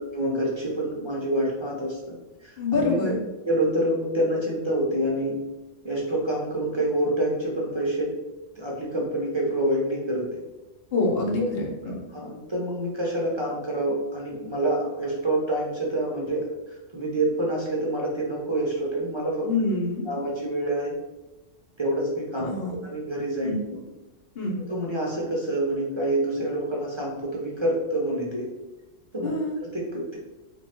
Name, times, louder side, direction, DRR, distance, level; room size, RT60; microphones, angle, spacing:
voice 1, 0.0-2.1 2.4-3.0 3.4-5.4 5.8-8.1 8.6-10.4 11.4-11.5 11.9-19.5 20.1-20.9 21.8-23.8 24.7-28.5 29.1-29.3 29.6-30.2, right 1 dB, 30° right, -4 dB, 0.5 m, -27 dB
voice 2, 2.6-3.2 10.9-12.0 19.4-20.0 22.4-22.7 23.4-23.6 24.3-24.6 29.2-29.5, left 3 dB, 55° left, -2 dB, 1.1 m, -26 dB
3.1 x 2.6 x 4.2 m, 1.0 s
omnidirectional pair, 1.3 m